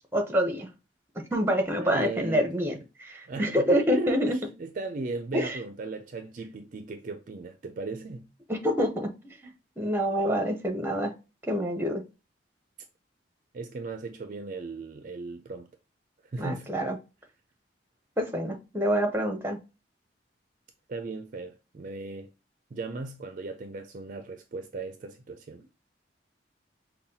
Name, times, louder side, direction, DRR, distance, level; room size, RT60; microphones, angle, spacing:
voice 1, 0.1-0.7 1.2-2.7 3.0-4.4 5.3-5.6 8.5-9.1 9.4-11.1 11.5-12.0 16.4-17.0 18.2-19.6, equal, 15° right, 0.7 m, -27 dB
voice 2, 1.8-2.8 3.3-8.3 13.5-15.7 16.3-16.7 20.9-22.3 22.7-25.6, right 3 dB, 45° right, 0.4 m, -37 dB
5.5 x 2.2 x 2.7 m
head